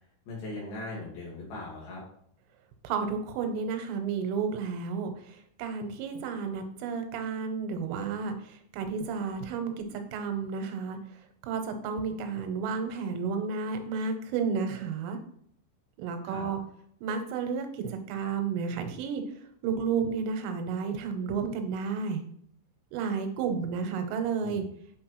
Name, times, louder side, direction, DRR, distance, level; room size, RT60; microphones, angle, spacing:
voice 1, 0.3-2.0 16.2-16.5 24.4-24.6, left 2 dB, 60° left, -5 dB, 3.2 m, -39 dB
voice 2, 2.8-15.2 16.0-16.6 17.0-19.2 19.6-22.2 22.9-24.6, right 5 dB, 90° right, 7 dB, 3.4 m, -32 dB
8.4 x 4.2 x 3.0 m, 0.65 s
omnidirectional pair, 5.6 m